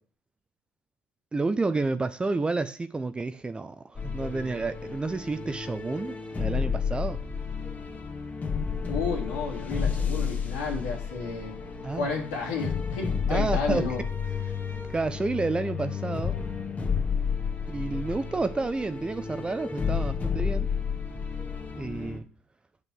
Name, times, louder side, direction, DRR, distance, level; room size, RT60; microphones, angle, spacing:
voice 1, 1.3-7.2 11.8-12.1 13.3-13.9 14.9-16.4 17.7-20.7 21.8-22.3, right 3 dB, 20° right, 12 dB, 0.6 m, -30 dB
sound 1, 3.9-22.2, left 6 dB, 30° left, 1.8 m, -31 dB
voice 2, 8.8-11.6 12.0-14.0, left 4 dB, 85° left, -1 dB, 2.9 m, -32 dB
7.9 x 5.5 x 7.1 m, 0.42 s
hypercardioid pair, 70°, 5 cm